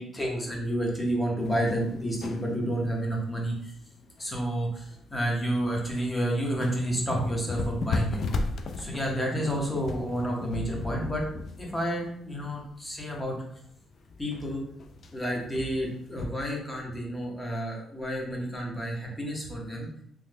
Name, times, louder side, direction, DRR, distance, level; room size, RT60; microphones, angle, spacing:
voice 1, 0.0-3.7 4.2-8.2 8.8-11.2 11.6-13.4 14.2-14.6 15.1-19.9, right 1 dB, 15° left, -1 dB, 0.8 m, -30 dB
sound 1, 1.4-16.3, left 3 dB, 50° left, 0.3 m, -37 dB
3.0 x 2.2 x 3.4 m, 0.68 s
cardioid pair, 135°, 0 cm